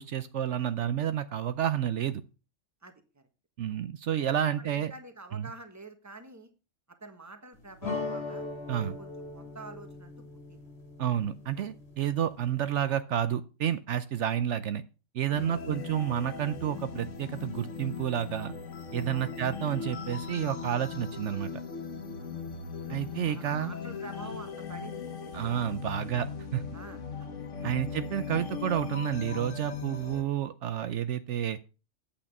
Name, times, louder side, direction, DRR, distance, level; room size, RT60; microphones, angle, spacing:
voice 1, 0.0-2.2 3.6-4.9 5.3-5.5 8.7-9.0 11.0-14.8 15.1-18.5 18.9-21.5 22.9-23.7 25.3-26.3 26.5-26.6 27.6-31.6, right 10 dB, 70° right, 12 dB, 1.0 m, -30 dB
voice 2, 2.8-3.2 3.7-3.8 4.6-6.5 7.0-8.4 8.8-10.1 10.5-10.6 11.6-11.7 15.3-15.6 19.1-19.3 22.2-22.3 22.8-25.4 25.9-26.1 26.7-27.0 27.6-28.0, right 3 dB, 15° right, 7 dB, 1.4 m, -48 dB
sound 1, 7.8-12.7, left 3 dB, 55° left, 2.4 m, -40 dB
sound 2, 15.3-30.2, left 6 dB, 75° left, 1.6 m, -39 dB
8.8 x 8.3 x 5.3 m, 0.32 s
omnidirectional pair, 1.3 m